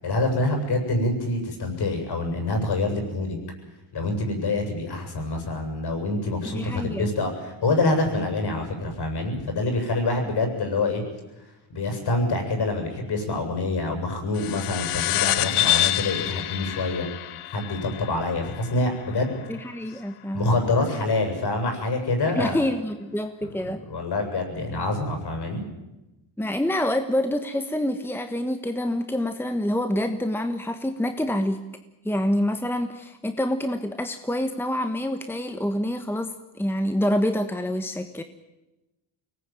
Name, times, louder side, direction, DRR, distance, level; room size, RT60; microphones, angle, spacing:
voice 1, 0.0-3.4 3.9-11.0 11.7-17.1 17.5-19.4 19.9-20.0 20.3-22.6 23.6-25.6, left 2 dB, 50° left, 5 dB, 7.9 m, -26 dB
voice 2, 6.4-7.1 19.5-20.5 22.3-23.8 26.4-31.6 32.0-38.2, left 1 dB, 5° left, 7 dB, 1.4 m, -27 dB
sound 1, 14.3-19.3, left 14 dB, 90° left, 1.2 m, -27 dB
24.0 x 19.0 x 9.2 m, 1.0 s
cardioid pair, 100°, 49 cm